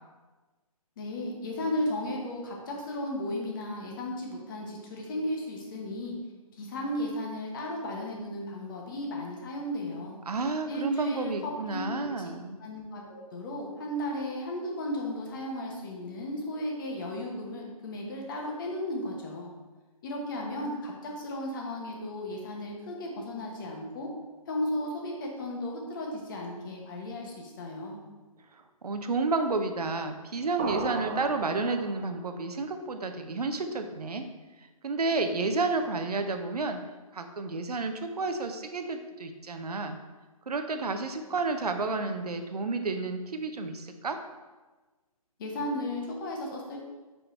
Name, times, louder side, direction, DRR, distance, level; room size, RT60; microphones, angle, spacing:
voice 1, 1.0-6.1 6.6-10.2 10.7-12.3 12.6-19.5 20.0-24.1 24.5-28.0 45.4-46.8, left 1 dB, 35° left, 0 dB, 1.1 m, -35 dB
voice 2, 10.3-12.6 28.8-34.2 34.8-36.8 37.1-40.0 40.5-44.2, right 3 dB, 85° right, 7 dB, 0.7 m, -31 dB
sound 1, 30.6-32.3, right 4 dB, 20° right, 0.4 m, -36 dB
5.2 x 4.3 x 4.3 m, 1.2 s
hypercardioid pair, 155°, 19 cm